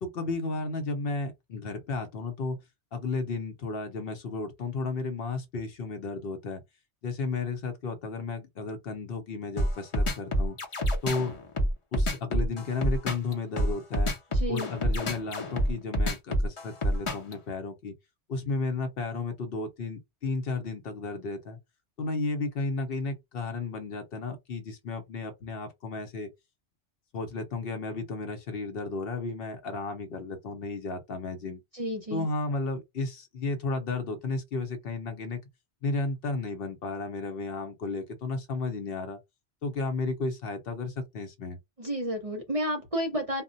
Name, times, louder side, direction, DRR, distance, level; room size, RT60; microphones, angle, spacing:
voice 1, 0.0-2.6 2.9-6.6 7.0-10.6 11.0-11.3 11.9-14.1 14.5-17.9 18.3-21.6 22.0-26.3 27.1-31.6 32.1-35.4 35.8-39.2 39.6-41.6, left 3 dB, 60° left, 0.8 m, -33 dB
sound 1, 9.6-17.3, equal, 35° left, 0.6 m, -27 dB
voice 2, 14.3-14.7 31.7-32.3 41.8-43.4, equal, 40° right, 0.6 m, -31 dB
2.1 x 2.1 x 3.8 m
omnidirectional pair, 1.2 m